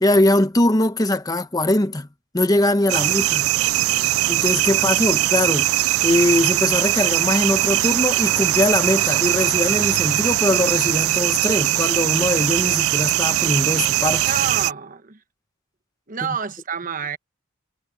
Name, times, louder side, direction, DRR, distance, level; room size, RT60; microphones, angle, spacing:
voice 1, 0.0-2.1 2.3-3.5 4.3-5.7 6.0-14.3, left 1 dB, 20° left, 1.0 m, -21 dB
Japan Kashiwa Insects Far and Upclose, 2.9-14.7, right 15 dB, 85° right, 0.3 m, -20 dB
voice 2, 14.3-15.2 16.1-17.2, right 6 dB, 40° right, 1.1 m, -29 dB
head